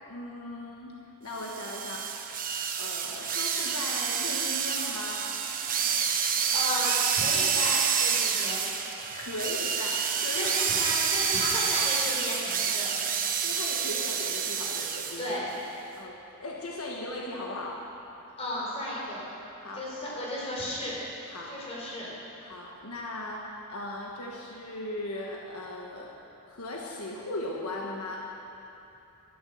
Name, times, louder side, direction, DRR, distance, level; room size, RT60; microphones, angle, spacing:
voice 1, 0.1-0.9 1.2-2.2 2.8-5.3 9.1-10.8 13.4-15.3 16.0-17.9 19.6-19.9 21.3-21.6 22.4-26.1 26.5-28.3, left 1 dB, 80° left, -1 dB, 1.3 m, -38 dB
sound 1, 1.4-15.3, right 7 dB, 40° right, 0.9 m, -28 dB
voice 2, 6.5-8.6 10.3-12.9 15.2-15.5 18.4-19.2 19.7-21.0 21.3-22.1, left 1 dB, 30° left, -5 dB, 4.1 m, -34 dB
12.5 x 10.0 x 7.7 m, 2.9 s
head